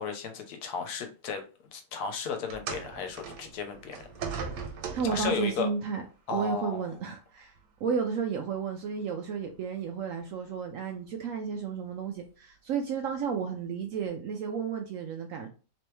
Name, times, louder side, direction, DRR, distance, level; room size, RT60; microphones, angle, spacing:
voice 1, 0.0-4.0 5.0-5.7 6.3-6.8, left 6 dB, 70° left, 1.1 m, -34 dB
sound 1, 2.5-5.5 6.5-6.7 7.6-7.7, right 5 dB, 90° right, 1.3 m, -38 dB
voice 2, 4.9-6.0 6.3-7.5 7.8-15.5, right 6 dB, 70° right, 0.8 m, -32 dB
3.3 x 3.0 x 3.0 m
omnidirectional pair, 1.8 m